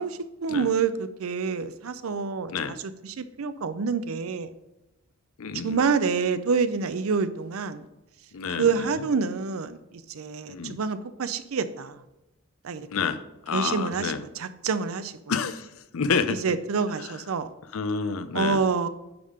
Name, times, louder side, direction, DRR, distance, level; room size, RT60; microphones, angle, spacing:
voice 1, 0.0-2.8 3.0-4.5 5.6-7.8 8.6-12.0 12.6-12.9 13.5-15.1 16.3-17.5 18.3-18.9, right 5 dB, 85° right, 0.5 m, -27 dB
voice 2, 5.4-5.8 8.3-8.9 10.5-10.8 12.9-14.2 15.3-16.4 17.7-18.6, left 5 dB, 85° left, 0.6 m, -29 dB
9.6 x 3.6 x 5.0 m
head